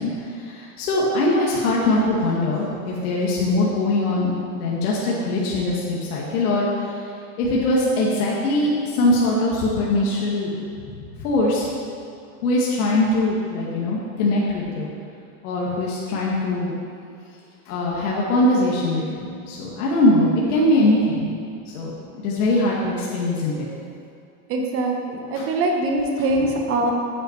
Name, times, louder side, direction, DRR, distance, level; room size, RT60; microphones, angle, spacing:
voice 1, 0.0-7.1 7.4-10.5 11.0-11.7 12.4-14.9 15.4-16.7 17.7-21.3 21.7-23.7 25.3-25.5, left 1 dB, 85° left, -5 dB, 2.1 m, -22 dB
voice 2, 24.5-26.9, right 2 dB, 30° right, 2 dB, 1.1 m, -23 dB
8.8 x 8.6 x 4.6 m, 2.5 s
supercardioid pair, 165°, 44 cm